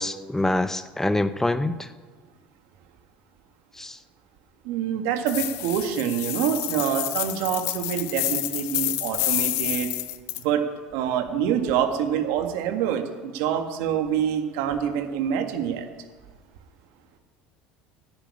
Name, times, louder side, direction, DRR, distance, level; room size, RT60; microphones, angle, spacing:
voice 1, 0.0-1.9 3.8-4.0, left 2 dB, 10° left, 12 dB, 0.7 m, -25 dB
voice 2, 4.7-9.9 10.4-10.6 10.9-15.9, right 9 dB, 70° right, 6 dB, 1.8 m, -26 dB
sound 1, 5.3-10.4, left 16 dB, 65° left, 0.9 m, -29 dB
10.5 x 8.9 x 9.8 m, 1.4 s
hypercardioid pair, 80°, 5 cm